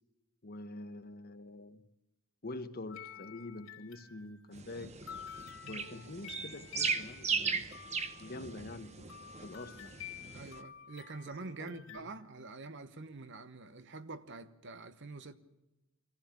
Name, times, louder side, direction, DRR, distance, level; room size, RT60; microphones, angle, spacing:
voice 1, 0.4-1.8 2.4-4.9 5.7-7.7 8.2-9.9 11.6-12.0, left 2 dB, 45° left, 1.0 m, -46 dB
sound 1, 2.9-4.5 5.1-12.0, left 10 dB, 75° left, 3.2 m, -50 dB
sound 2, 4.5-10.6, right 5 dB, 30° right, 1.0 m, -38 dB
voice 2, 10.3-15.3, right 3 dB, 55° right, 1.1 m, -46 dB
24.0 x 15.0 x 8.6 m
head